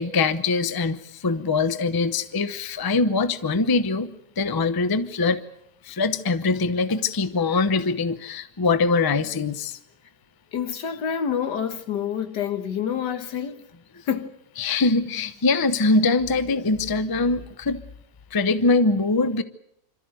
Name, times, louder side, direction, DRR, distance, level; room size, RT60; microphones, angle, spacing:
voice 1, 0.0-5.4 5.9-9.8 14.6-17.8 18.3-19.4, left 3 dB, 25° left, 0.5 m, -23 dB
voice 2, 10.5-13.6 14.1-14.4, left 8 dB, 80° left, 2.0 m, -27 dB
27.0 x 13.5 x 9.1 m
omnidirectional pair, 1.8 m